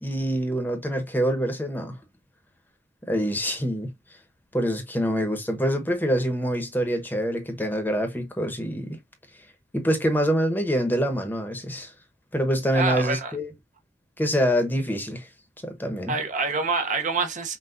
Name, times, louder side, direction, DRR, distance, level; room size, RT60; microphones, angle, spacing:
voice 1, 0.0-2.0 3.0-3.9 4.5-9.0 9.7-11.9 12.3-13.5 14.2-15.3 15.6-16.1, equal, 10° left, 0.9 m, -25 dB
voice 2, 12.7-13.3 16.1-17.6, right 4 dB, 45° right, 0.7 m, -26 dB
5.9 x 2.3 x 2.5 m
head